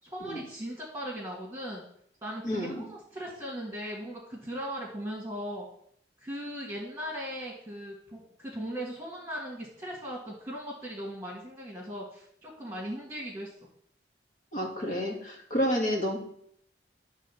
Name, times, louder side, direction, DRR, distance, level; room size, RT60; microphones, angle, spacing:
voice 1, 0.0-1.8 2.2-5.7 6.2-13.5, equal, 15° right, -5 dB, 1.9 m, -38 dB
voice 2, 2.4-2.8 14.5-16.2, equal, 50° left, -1 dB, 2.1 m, -30 dB
11.0 x 3.8 x 7.1 m, 0.66 s
head